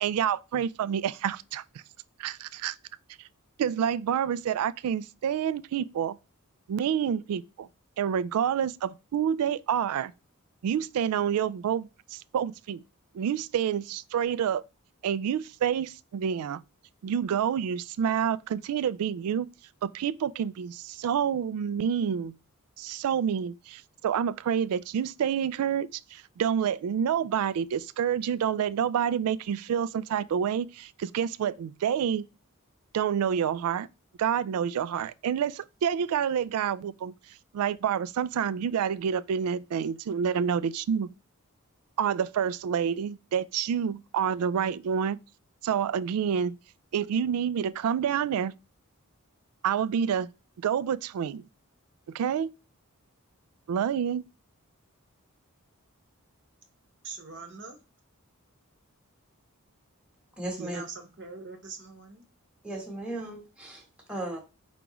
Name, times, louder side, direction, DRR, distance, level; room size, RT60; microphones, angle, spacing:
voice 1, 0.0-1.6 2.2-2.8 3.6-6.2 6.7-7.7 8.0-10.1 10.6-12.8 13.1-14.6 15.0-16.6 17.0-19.5 19.8-22.4 22.8-32.2 32.9-33.9 34.2-37.1 37.5-41.1 42.0-45.2 45.6-46.6 46.9-48.5 49.6-50.3 50.6-51.4 52.1-52.5 53.7-54.2, right 8 dB, 80° right, 0.3 m, -28 dB
voice 2, 57.0-57.8 60.6-62.2, right 4 dB, 55° right, 0.9 m, -42 dB
voice 3, 60.4-60.8 62.6-64.4, right 1 dB, 5° right, 1.1 m, -36 dB
5.0 x 3.5 x 3.0 m
head